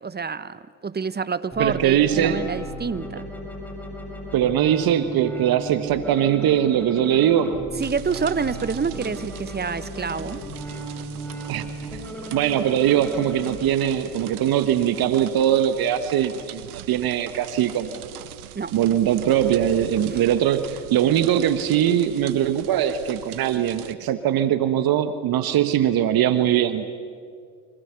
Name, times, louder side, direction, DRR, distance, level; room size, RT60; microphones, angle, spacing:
voice 1, 0.0-3.3 7.8-10.5 18.5-18.7 20.0-20.2, right 5 dB, 20° right, 15 dB, 1.1 m, -28 dB
sound 1, 1.5-13.5, right 1 dB, 5° left, 7.0 m, -36 dB
voice 2, 1.6-2.5 4.3-7.6 11.5-11.6 11.9-12.0 12.3-18.1 18.7-26.8, right 10 dB, 55° right, 11 dB, 1.4 m, -21 dB
sound 2, 7.8-23.9, right 12 dB, 85° right, 1.1 m, -41 dB
29.5 x 26.0 x 7.0 m, 2.1 s
hypercardioid pair, 60°, 44 cm